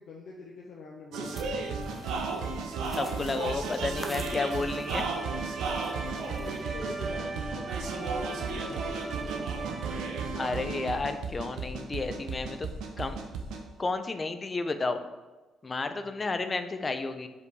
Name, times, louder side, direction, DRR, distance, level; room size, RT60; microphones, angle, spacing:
voice 1, 0.0-1.5 6.1-9.4 15.8-16.3, left 3 dB, 70° left, -2 dB, 1.0 m, -46 dB
sound 1, 1.1-13.6, right 4 dB, 85° right, 0.8 m, -34 dB
sound 2, 1.2-6.6, equal, 5° left, 0.9 m, -49 dB
voice 2, 2.9-5.1 10.4-12.7 13.0-13.2 13.8-15.0 15.6-17.3, left 3 dB, 30° left, 9 dB, 0.6 m, -31 dB
Bowed string instrument, 3.7-10.8, right 3 dB, 25° right, 0.4 m, -41 dB
5.4 x 5.1 x 4.7 m, 1.2 s
cardioid pair, 90°, 0 cm